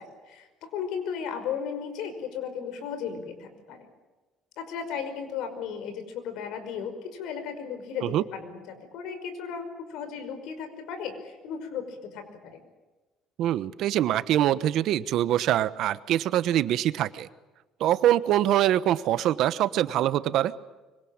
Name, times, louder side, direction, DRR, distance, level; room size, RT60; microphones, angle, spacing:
voice 1, 0.0-3.9 4.6-12.6, left 7 dB, 85° left, 8 dB, 5.3 m, -35 dB
voice 2, 13.4-17.3 17.8-20.5, right 12 dB, 70° right, 15 dB, 1.1 m, -24 dB
25.0 x 24.5 x 8.9 m, 1.2 s
cardioid pair, 125°, 0 cm